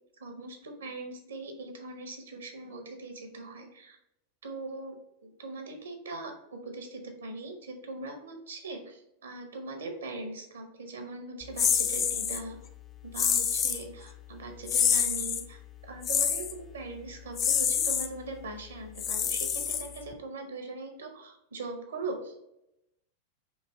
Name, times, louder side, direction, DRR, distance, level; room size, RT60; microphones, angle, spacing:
voice 1, 0.2-4.0 4.4-4.9 5.2-12.6 13.0-15.6 15.9-22.4, right 2 dB, 65° right, 4 dB, 0.7 m, -41 dB
sound 1, 11.6-12.4 13.2-13.8 14.7-15.4 16.0-16.5 17.4-18.1 19.0-20.1, left 7 dB, 30° left, 0.3 m, -27 dB
3.2 x 2.6 x 3.4 m, 0.83 s
figure-of-eight pair, 90°, 0 cm